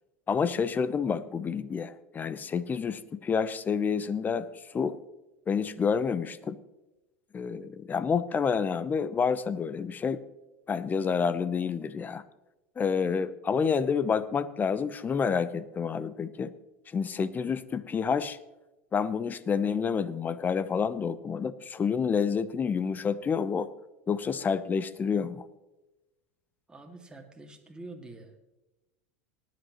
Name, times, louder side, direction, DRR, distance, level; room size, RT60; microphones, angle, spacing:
voice 1, 0.3-4.5 4.7-5.0 5.5-6.6 7.3-10.2 10.7-12.2 12.8-16.5 16.9-18.4 18.9-23.7 24.1-25.5, left 6 dB, 25° left, 16 dB, 0.8 m, -28 dB
voice 2, 26.7-28.3, right 2 dB, 10° right, 3 dB, 2.1 m, -46 dB
19.0 x 10.5 x 3.0 m, 1.0 s
hypercardioid pair, 95°, 7 cm